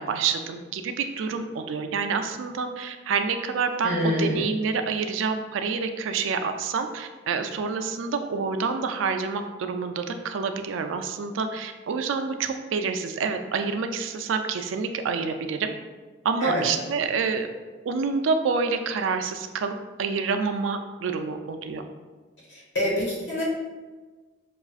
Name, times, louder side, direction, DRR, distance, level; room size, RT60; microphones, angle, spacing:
voice 1, 0.0-15.7 16.2-17.5 17.9-19.7 20.0-21.8, right 5 dB, 80° right, 7 dB, 0.3 m, -27 dB
voice 2, 3.8-4.4 16.4-16.6 22.5-23.4, left 1 dB, 65° left, -4 dB, 1.2 m, -26 dB
5.8 x 2.4 x 2.3 m, 1.3 s
head